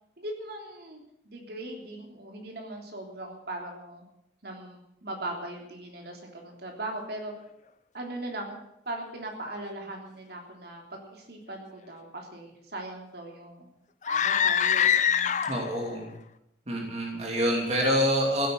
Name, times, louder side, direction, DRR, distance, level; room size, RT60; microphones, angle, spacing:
voice 1, 0.2-4.0 4.4-7.3 7.9-13.7 14.1-15.4, right 1 dB, 60° right, 1 dB, 3.4 m, -39 dB
sound 1, 14.0-15.8, left 8 dB, 45° left, 0.6 m, -24 dB
voice 2, 15.5-16.1 16.7-18.5, equal, 40° right, 0 dB, 2.8 m, -26 dB
15.5 x 9.0 x 9.4 m, 0.80 s
head